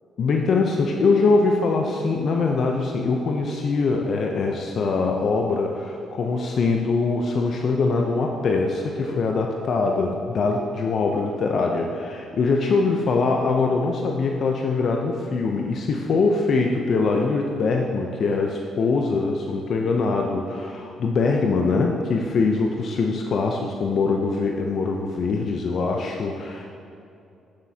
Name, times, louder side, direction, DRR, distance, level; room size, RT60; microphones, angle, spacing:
voice 1, 0.2-26.7, left 4 dB, 60° left, 1 dB, 0.6 m, -23 dB
8.7 x 7.3 x 2.8 m, 2.6 s
cardioid pair, 90°, 0 cm